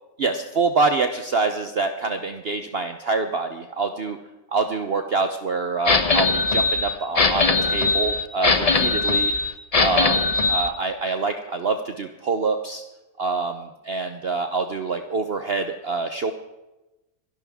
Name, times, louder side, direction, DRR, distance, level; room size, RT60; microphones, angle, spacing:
voice 1, 0.2-4.2 4.5-9.3 9.8-12.8 13.2-16.3, right 4 dB, 45° right, 6 dB, 1.0 m, -26 dB
sound 1, 5.9-10.7, left 3 dB, 30° left, 0.8 m, -20 dB
26.0 x 11.5 x 3.6 m, 1.0 s
omnidirectional pair, 1.6 m